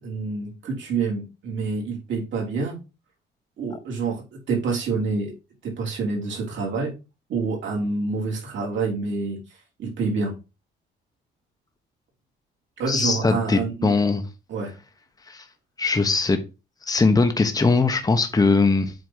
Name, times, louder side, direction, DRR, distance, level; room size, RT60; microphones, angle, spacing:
voice 1, 0.0-2.8 3.6-5.3 5.6-6.9 7.3-9.4 9.8-10.3 12.8-13.9 14.5-14.7, right 4 dB, 70° right, -1 dB, 3.4 m, -27 dB
voice 2, 12.9-14.2 15.3-15.4 15.8-16.4 16.8-18.9, left 3 dB, 20° left, 7 dB, 1.0 m, -20 dB
7.9 x 3.1 x 5.6 m, 0.29 s
cardioid pair, 90°, 20 cm